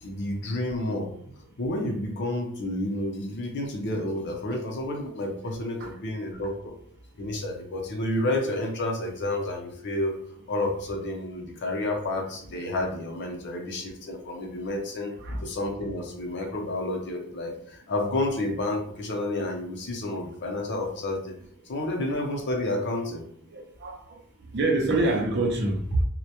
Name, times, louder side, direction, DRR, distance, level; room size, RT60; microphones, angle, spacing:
voice 1, 0.0-1.1 1.6-6.7 7.2-10.1 10.5-15.1 15.4-21.3 21.7-23.2, left 1 dB, 55° left, 0.5 m, -30 dB
voice 2, 23.5-24.2 24.5-26.0, right 2 dB, 50° right, 0.5 m, -26 dB
2.1 x 2.1 x 2.8 m
head